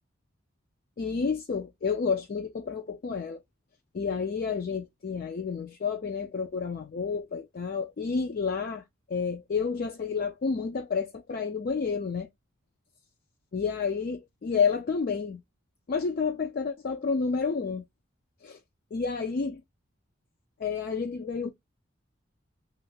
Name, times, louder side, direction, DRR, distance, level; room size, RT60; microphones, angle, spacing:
voice 1, 1.0-3.4 3.9-8.8 9.1-12.3 13.5-15.4 15.9-17.8 18.4-18.6 18.9-19.6 20.6-21.5, left 5 dB, 45° left, 0.3 m, -30 dB
3.1 x 2.3 x 3.2 m
head